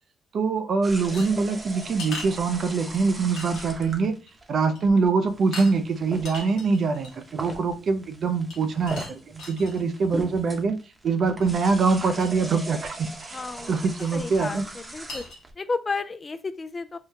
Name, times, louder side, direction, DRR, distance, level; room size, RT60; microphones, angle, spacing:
voice 1, 0.3-4.1 4.5-10.8 11.0-14.6, right 4 dB, 60° right, 0.5 m, -24 dB
sound 1, 0.8-15.5, right 2 dB, 30° right, 0.8 m, -40 dB
sound 2, 1.1-3.0 3.4-3.9 4.3-4.4 4.7-5.0 5.5-5.7 6.1-7.3 8.5-9.8 11.4-11.6 11.9-12.0 12.2-12.3 14.0-14.2 14.7-14.8 15.1-15.4, left 3 dB, 80° left, 0.9 m, -39 dB
voice 2, 13.3-13.8 14.1-15.2 15.6-17.0, left 4 dB, 35° left, 0.3 m, -32 dB
3.7 x 2.2 x 2.7 m
supercardioid pair, 55°, 0 cm